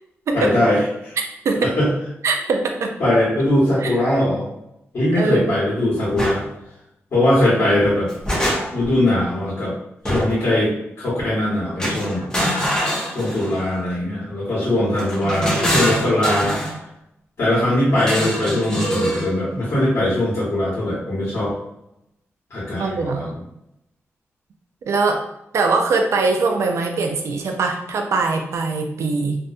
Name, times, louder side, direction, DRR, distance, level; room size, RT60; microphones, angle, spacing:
voice 1, 0.3-1.2 1.6-1.9 3.0-4.5 4.9-6.4 7.1-8.1 8.7-9.7 10.0-12.3 13.1-16.6 17.4-21.5 22.5-23.4, left 1 dB, 65° left, -9 dB, 1.2 m, -20 dB
voice 2, 2.2-2.9 3.8-3.9 5.1-5.5 15.0-15.8 22.8-23.3 24.9-25.2 25.5-29.4, right 3 dB, 75° right, 3 dB, 0.4 m, -22 dB
sound 1, 6.2-6.4 7.8-8.9 10.1-10.5 11.8-13.6 15.0-16.8 18.0-19.3, equal, 15° left, 0.7 m, -24 dB
2.5 x 2.1 x 2.6 m, 0.82 s
wide cardioid pair, 140°, 5 cm